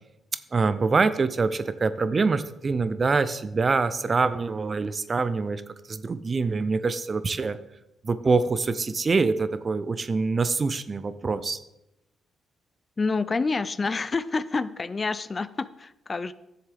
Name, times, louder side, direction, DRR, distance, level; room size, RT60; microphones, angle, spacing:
voice 1, 0.5-5.6 5.9-7.6 8.0-11.6, right 4 dB, 40° right, 13 dB, 0.5 m, -25 dB
voice 2, 13.0-16.3, left 4 dB, 35° left, 16 dB, 0.4 m, -28 dB
11.0 x 7.0 x 3.4 m, 0.89 s
supercardioid pair, 50°, 0 cm